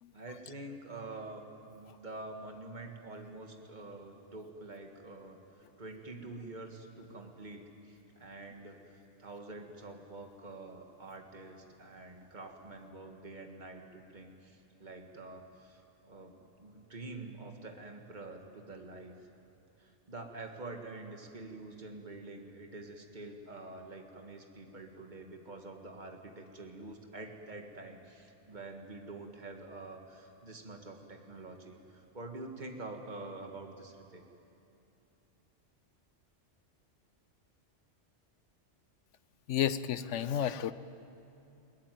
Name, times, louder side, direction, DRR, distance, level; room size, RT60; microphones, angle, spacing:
voice 1, 0.1-19.2 19.8-34.2, right 2 dB, 40° right, 3 dB, 2.0 m, -47 dB
voice 2, 39.5-40.7, left 10 dB, 90° left, 14 dB, 1.1 m, -31 dB
22.0 x 19.0 x 9.3 m, 2.8 s
omnidirectional pair, 1.2 m